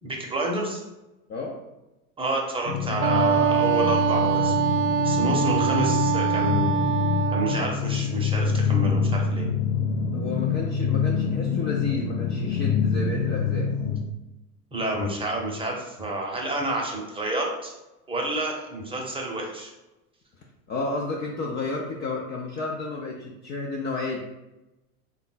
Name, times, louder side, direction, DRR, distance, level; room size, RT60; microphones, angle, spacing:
voice 1, 0.0-0.8 2.2-4.5 5.0-6.7 7.3-9.5 14.7-17.7 18.1-19.7, right 1 dB, 10° right, -1 dB, 0.7 m, -29 dB
sound 1, 2.7-14.0, left 6 dB, 80° left, 0.7 m, -26 dB
Wind instrument woodwind instrument, 3.0-7.6, right 9 dB, 40° right, 0.4 m, -24 dB
voice 2, 10.1-13.7 20.4-24.2, left 3 dB, 25° left, -2 dB, 0.4 m, -32 dB
3.5 x 2.4 x 3.9 m, 0.99 s
hypercardioid pair, 90°, 44 cm